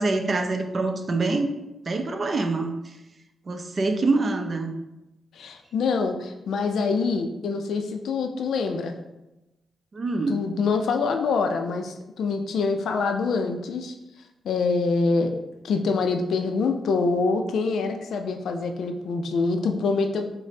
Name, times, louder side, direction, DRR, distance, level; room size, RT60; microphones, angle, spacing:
voice 1, 0.0-1.5 1.9-2.7 3.5-4.7 9.9-10.4, right 3 dB, 45° right, 5 dB, 0.5 m, -25 dB
voice 2, 5.3-9.0 10.3-13.9 14.4-20.3, left 4 dB, 80° left, 6 dB, 0.3 m, -25 dB
4.9 x 2.0 x 2.7 m, 0.96 s
cardioid pair, 65°, 0 cm